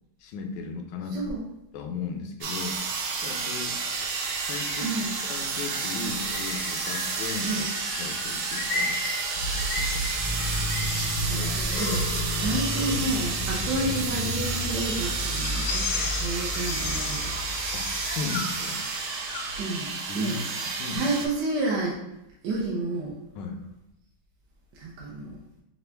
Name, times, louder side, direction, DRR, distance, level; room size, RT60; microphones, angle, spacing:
voice 1, 0.2-1.2 1.7-3.8 4.4-5.0 5.3-7.7 8.0-9.0 11.3-11.7 13.8-13.9 17.7-18.8 20.1-20.4 20.6-21.1 23.3-23.6, left 5 dB, 70° left, 3 dB, 1.1 m, -36 dB
voice 2, 1.1-1.4 4.8-5.2 7.4-7.7 11.3-12.0 12.3-17.3 19.6-19.9 20.1-20.4 20.9-22.0 22.4-23.2 24.8-25.4, right 2 dB, 65° right, -4 dB, 1.2 m, -30 dB
sound 1, 2.4-21.3, right 4 dB, 85° right, 1.5 m, -31 dB
sound 2, 2.6-19.6, left 2 dB, 85° left, 1.4 m, -35 dB
sound 3, 10.2-18.3, left 2 dB, 40° left, 0.8 m, -34 dB
5.1 x 2.4 x 3.3 m, 0.85 s
omnidirectional pair, 2.2 m